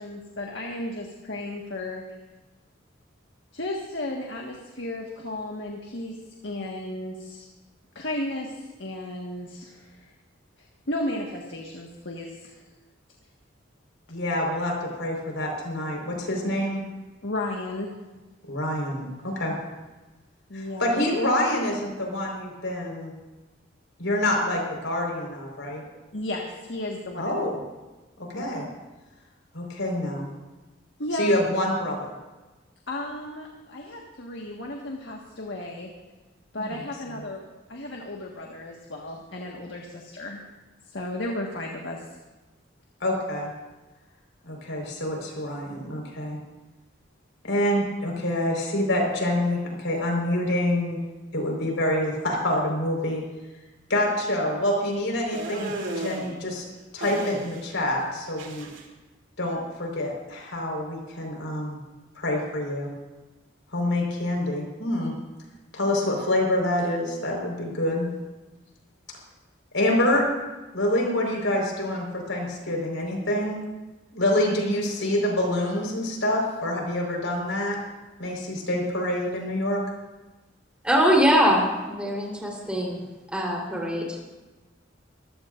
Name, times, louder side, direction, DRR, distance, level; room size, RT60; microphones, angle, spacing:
voice 1, 0.0-2.0 3.5-6.2 6.4-7.5 7.9-10.0 10.9-12.6 17.2-17.9 20.5-21.0 26.1-27.4 28.3-28.4 31.0-31.3 32.9-35.9 36.5-37.4 37.7-40.4 40.8-42.0, left 1 dB, 70° left, 0 dB, 1.7 m, -34 dB
voice 2, 14.1-16.8 18.5-19.5 20.5-23.1 24.0-25.8 27.1-27.6 28.2-28.7 29.5-30.3 31.1-32.1 36.5-36.8 43.0-43.5 44.5-46.4 47.4-51.0 51.3-53.2 53.9-56.6 56.9-58.7 59.4-61.8 62.1-62.9 63.7-65.1 65.7-68.1 69.7-70.3 70.7-73.6 74.1-77.8 78.2-79.8, left 1 dB, 85° left, 0 dB, 4.7 m, -26 dB
sound 1, 55.3-56.3 57.0-57.8 58.0-58.8, right 1 dB, 80° right, 2.8 m, -34 dB
voice 3, 80.8-81.6 81.9-83.0 83.3-84.3, equal, 5° right, -2 dB, 3.9 m, -22 dB
24.0 x 16.0 x 2.6 m, 1.2 s
head